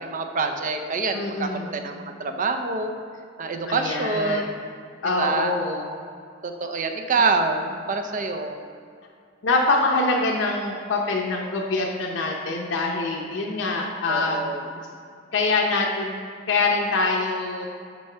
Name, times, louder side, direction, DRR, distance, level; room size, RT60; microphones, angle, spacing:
voice 1, 0.0-2.9 3.4-4.6 5.2-5.5 6.4-8.6 14.1-14.7, right 4 dB, 45° right, 5 dB, 0.6 m, -26 dB
voice 2, 1.1-1.8 3.7-4.5 5.0-5.9 9.4-14.5 15.3-16.1 16.5-17.7, left 3 dB, 70° left, -1 dB, 0.8 m, -24 dB
6.1 x 5.7 x 5.5 m, 2.3 s
head